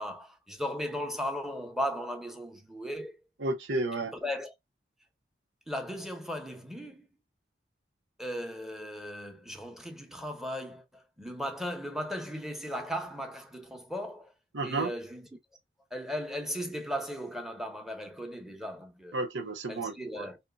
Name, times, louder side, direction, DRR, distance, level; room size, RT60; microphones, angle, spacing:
voice 1, 0.0-3.2 4.2-4.5 5.7-7.1 8.2-14.3 14.6-15.3 15.9-19.2 19.7-20.4, equal, ahead, 0.9 m, -37 dB
voice 2, 3.4-4.1 14.5-14.9 19.1-20.3, right 2 dB, 85° right, 1.0 m, -32 dB
5.3 x 3.0 x 2.4 m
head